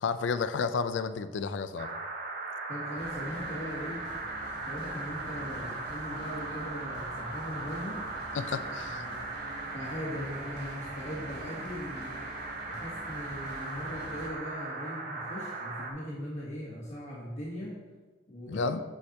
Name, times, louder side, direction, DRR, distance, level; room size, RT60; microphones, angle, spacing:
voice 1, 0.0-1.9 8.3-9.0 18.5-18.8, left 5 dB, 80° left, 11 dB, 0.4 m, -31 dB
sound 1, 1.8-15.9, right 3 dB, 50° right, 0.8 m, -38 dB
voice 2, 2.7-4.1 4.6-8.0 8.9-12.2 12.7-17.8 18.3-18.7, equal, 40° left, -7 dB, 1.2 m, -40 dB
sound 2, 2.8-14.3, equal, 60° left, 1.3 m, -48 dB
6.3 x 6.3 x 2.8 m, 1.3 s
head